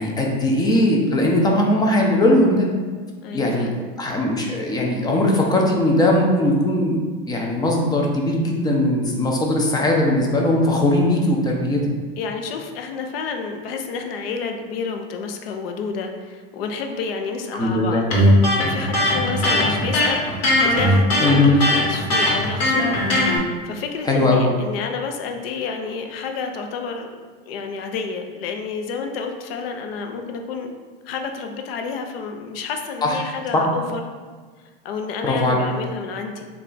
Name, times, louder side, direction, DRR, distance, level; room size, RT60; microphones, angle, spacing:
voice 1, 0.0-2.7 3.3-3.7 4.0-7.0 7.3-11.8 17.5-18.0 21.2-21.5 24.1-24.5 33.0-33.2 33.5-33.7 35.2-35.6, left 1 dB, 15° left, -1 dB, 0.4 m, -19 dB
voice 2, 3.2-3.7 12.2-23.0 23.3-27.1 27.5-30.7 31.0-34.0 34.8-36.4, left 5 dB, 80° left, 4 dB, 0.6 m, -30 dB
Electric guitar, 18.1-23.4, left 1 dB, 55° left, 1.2 m, -18 dB
3.2 x 2.3 x 3.8 m, 1.5 s
supercardioid pair, 130°, 29 cm